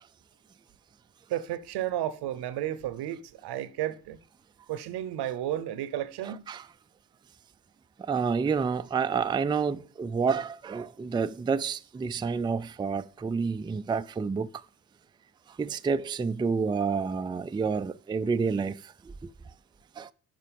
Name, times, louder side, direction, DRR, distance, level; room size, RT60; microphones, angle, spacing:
voice 1, 1.3-4.2 4.7-6.4, right 12 dB, 80° right, 0.8 m, -32 dB
voice 2, 6.2-6.6 8.0-14.5 15.5-19.3 20.0-20.1, right 5 dB, 15° right, 0.3 m, -29 dB
7.5 x 6.0 x 5.2 m
supercardioid pair, 70°, 38 cm